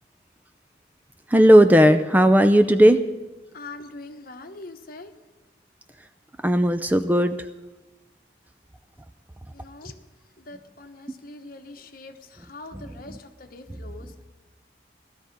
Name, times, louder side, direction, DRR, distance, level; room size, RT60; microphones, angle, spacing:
voice 1, 1.3-3.0 6.4-7.3, equal, 10° right, 9 dB, 0.4 m, -15 dB
voice 2, 3.5-5.1 9.5-9.9 10.4-14.2, left 2 dB, 50° left, 7 dB, 1.1 m, -43 dB
17.0 x 12.5 x 5.3 m, 1.2 s
head